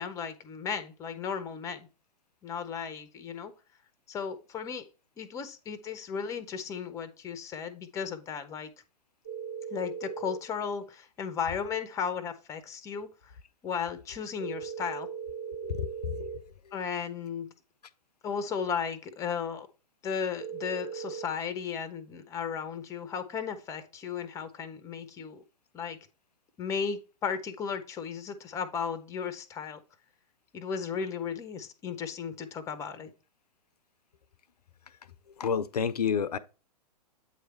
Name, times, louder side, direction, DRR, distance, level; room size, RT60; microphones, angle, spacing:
voice 1, 0.0-1.9 2.4-3.5 4.1-4.9 5.2-8.7 9.7-13.3 13.6-15.1 16.7-17.5 18.2-19.7 20.0-25.4 25.7-26.0 26.6-29.8 30.5-33.1, left 6 dB, 15° left, 0.6 m, -35 dB
sound 1, 9.2-10.4 14.4-16.4 20.4-21.3, right 7 dB, 45° right, 1.5 m, -38 dB
voice 2, 15.6-16.4 16.7-16.8 35.4-36.4, left 7 dB, 70° left, 0.5 m, -30 dB
8.2 x 3.3 x 4.4 m
figure-of-eight pair, 110°, 21 cm